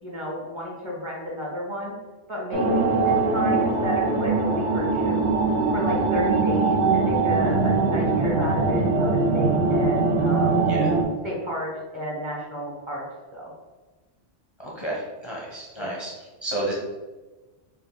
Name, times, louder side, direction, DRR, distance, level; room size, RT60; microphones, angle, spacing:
voice 1, 0.0-2.0 2.3-5.3 5.7-10.7 11.2-13.0 13.3-13.5 15.8-16.0, equal, 30° right, -3 dB, 0.9 m, -32 dB
sound 1, 2.5-11.0, right 3 dB, 75° right, 1.0 m, -22 dB
voice 2, 14.6-16.1 16.4-16.7, right 1 dB, 35° left, -4 dB, 0.5 m, -31 dB
4.4 x 2.5 x 3.5 m, 1.2 s
omnidirectional pair, 1.1 m